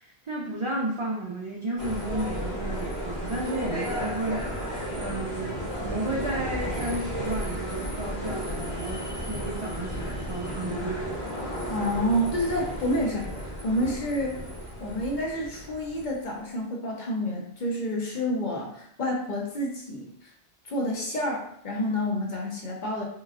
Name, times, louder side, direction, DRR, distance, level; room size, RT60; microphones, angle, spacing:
voice 1, 0.0-4.5 4.9-11.1, right 2 dB, 50° right, -3 dB, 0.4 m, -33 dB
sound 1, 1.8-16.2, equal, 35° left, 1.2 m, -33 dB
voice 2, 11.7-13.3 13.6-14.4 14.8-20.1 20.7-23.0, equal, 50° left, -1 dB, 0.8 m, -29 dB
3.9 x 3.0 x 2.4 m, 0.68 s
omnidirectional pair, 1.1 m